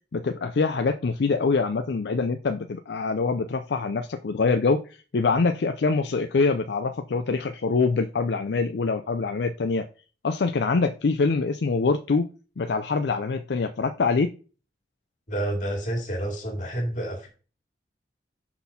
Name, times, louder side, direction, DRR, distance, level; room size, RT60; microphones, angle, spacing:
voice 1, 0.1-9.8 10.2-12.3 12.6-14.3, left 4 dB, 75° left, 7 dB, 0.5 m, -24 dB
voice 2, 15.3-17.3, right 1 dB, 45° left, 2 dB, 2.4 m, -29 dB
5.9 x 4.2 x 5.6 m, 0.36 s
head